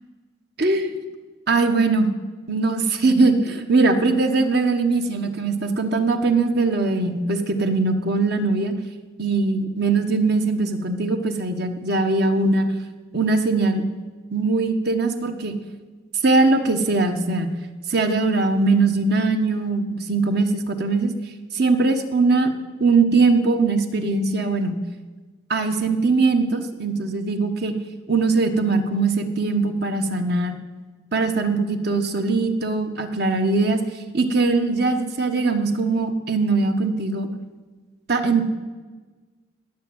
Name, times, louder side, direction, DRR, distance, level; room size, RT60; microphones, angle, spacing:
voice 1, 0.6-0.9 1.5-2.1 2.5-8.7 9.2-12.7 13.1-13.8 14.3-15.5 16.2-17.5 17.9-21.1 21.5-22.5 22.8-24.8 25.5-27.7 28.1-30.5 31.1-33.8 34.1-37.3 38.1-38.4, right 3 dB, 60° right, 6 dB, 1.4 m, -21 dB
19.5 x 7.5 x 7.9 m, 1.3 s
head